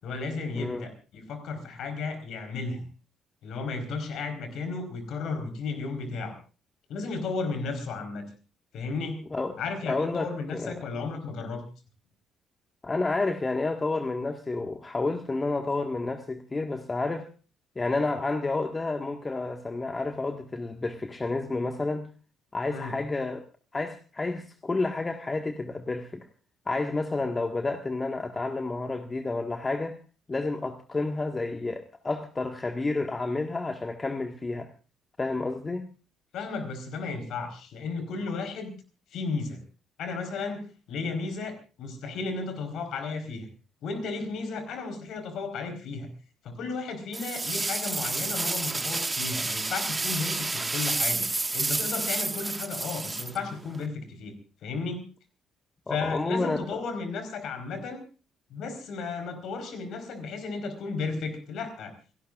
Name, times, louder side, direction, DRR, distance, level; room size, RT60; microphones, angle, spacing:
voice 1, 0.0-2.8 3.4-6.4 6.9-8.3 8.7-9.2 9.6-11.7 22.7-22.9 36.3-38.7 39.1-39.6 40.0-43.5 43.8-46.1 46.4-54.3 54.6-55.1 55.9-58.0 58.5-61.9, left 4 dB, 55° left, 7 dB, 4.3 m, -34 dB
voice 2, 0.6-0.9 9.3-9.6 9.9-10.3 10.5-10.8 12.8-17.3 17.7-22.1 22.5-23.4 23.7-26.3 26.6-30.0 30.3-34.7 35.2-35.9 55.9-56.6, left 3 dB, 25° left, 5 dB, 1.7 m, -30 dB
sound 1, 47.1-53.9, right 3 dB, 20° right, 1.7 m, -30 dB
29.0 x 17.5 x 2.5 m, 0.35 s
figure-of-eight pair, 45°, 0 cm